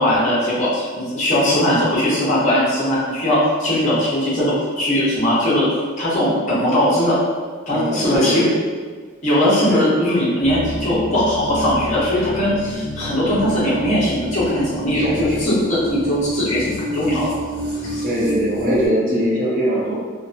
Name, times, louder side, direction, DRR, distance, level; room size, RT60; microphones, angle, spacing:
voice 1, 0.0-5.7 6.0-7.2 7.7-8.4 9.2-17.3 17.9-18.0, left 1 dB, 35° left, -9 dB, 0.8 m, -19 dB
voice 2, 7.7-8.5 9.7-9.8 14.9-15.2 18.0-19.9, equal, 40° right, -6 dB, 0.7 m, -21 dB
sound 1, 10.4-18.9, right 1 dB, 75° right, 1.0 m, -29 dB
2.7 x 2.1 x 2.5 m, 1.5 s
head